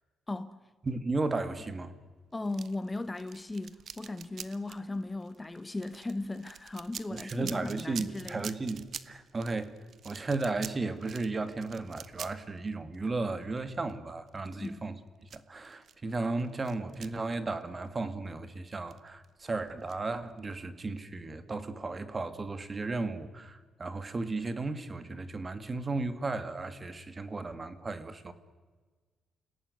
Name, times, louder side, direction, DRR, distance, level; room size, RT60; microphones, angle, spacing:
voice 1, 0.3-0.6 2.3-8.5 14.6-14.8, left 2 dB, 15° left, 1.1 m, -37 dB
voice 2, 0.8-1.9 7.1-9.7 10.0-14.9 15.3-28.3, right 3 dB, 25° right, 2.1 m, -35 dB
sound 1, 2.5-18.3 18.7-20.5, right 7 dB, 55° right, 1.2 m, -47 dB
29.0 x 17.5 x 9.6 m
cardioid pair, 110°, 0 cm